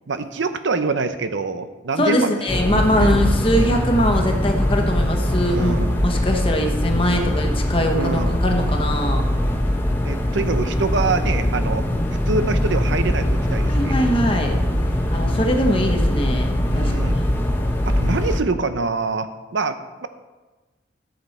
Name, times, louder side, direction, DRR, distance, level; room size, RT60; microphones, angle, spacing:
voice 1, 0.1-2.3 2.9-3.2 5.3-6.1 8.0-8.4 10.0-11.9 12.3-14.0 16.6-17.2 17.8-20.1, right 4 dB, 70° right, 10 dB, 0.7 m, -25 dB
voice 2, 2.0-9.2 13.7-14.6 15.1-17.1, equal, 30° left, 3 dB, 1.2 m, -22 dB
sound 1, 2.5-18.4, left 1 dB, 10° left, 0.9 m, -21 dB
13.0 x 7.3 x 4.3 m, 1.2 s
head